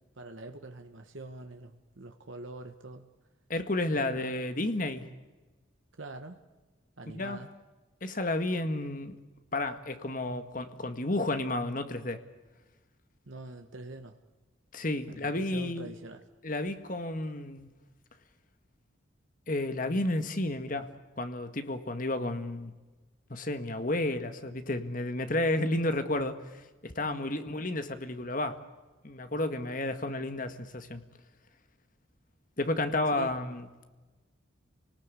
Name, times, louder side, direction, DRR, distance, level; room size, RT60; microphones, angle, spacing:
voice 1, 0.0-3.1 4.1-4.4 6.0-6.4 7.0-7.5 13.3-14.2 15.1-16.2 27.0-27.4 33.1-33.3, right 2 dB, 75° right, 5 dB, 1.5 m, -45 dB
voice 2, 3.5-5.1 7.1-7.4 8.0-9.2 9.5-12.2 14.7-15.9 16.4-17.7 19.5-20.9 21.2-22.7 23.3-28.6 29.0-31.0 32.6-33.9, left 2 dB, 45° left, 8 dB, 1.7 m, -31 dB
28.5 x 19.0 x 8.3 m, 1.2 s
head